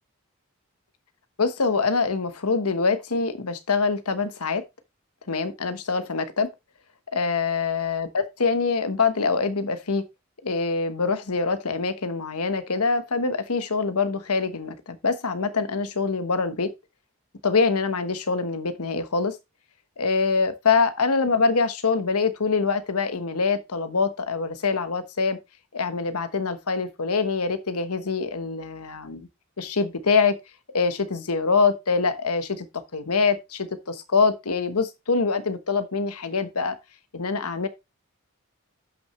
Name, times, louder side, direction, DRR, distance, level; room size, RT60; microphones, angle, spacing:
voice 1, 1.4-4.6 5.3-6.5 7.1-10.0 10.4-16.7 17.4-19.4 20.0-25.4 25.7-29.3 29.6-30.3 30.7-32.7 32.9-36.8 37.1-37.7, left 4 dB, 85° left, 1.2 m, -24 dB
11.5 x 6.1 x 3.1 m
head